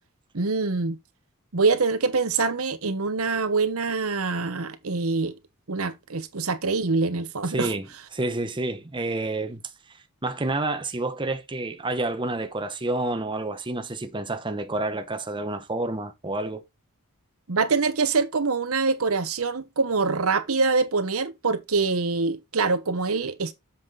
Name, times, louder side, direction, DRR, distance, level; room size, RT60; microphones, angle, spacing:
voice 1, 0.3-1.0 1.5-5.3 5.7-7.7 17.5-23.5, right 4 dB, 70° right, 1.0 m, -24 dB
voice 2, 7.5-7.9 8.1-9.6 10.2-16.6, right 2 dB, 20° right, 0.8 m, -29 dB
7.7 x 5.8 x 3.9 m
head